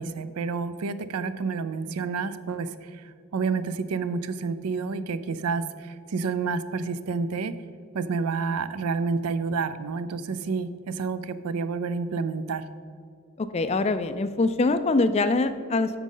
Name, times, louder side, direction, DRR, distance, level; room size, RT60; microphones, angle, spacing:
voice 1, 0.0-3.0 3.3-7.5 7.9-12.7, right 4 dB, 80° right, 13 dB, 0.4 m, -29 dB
voice 2, 13.4-16.0, left 3 dB, 30° left, 11 dB, 0.3 m, -24 dB
9.1 x 6.2 x 3.8 m, 2.3 s
head